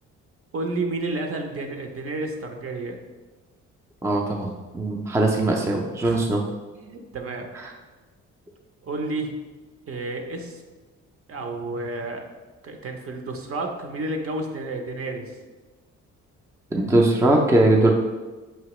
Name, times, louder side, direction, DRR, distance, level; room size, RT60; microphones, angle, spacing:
voice 1, 0.5-3.0 6.0-6.3 6.7-7.5 8.8-9.3 9.9-10.6 11.3-12.3 12.6-15.3, right 2 dB, 50° right, 4 dB, 0.7 m, -31 dB
voice 2, 4.0-6.4 16.7-17.9, right 2 dB, 10° right, 1 dB, 0.4 m, -20 dB
5.7 x 2.8 x 3.0 m, 1.2 s
cardioid pair, 90°, 30 cm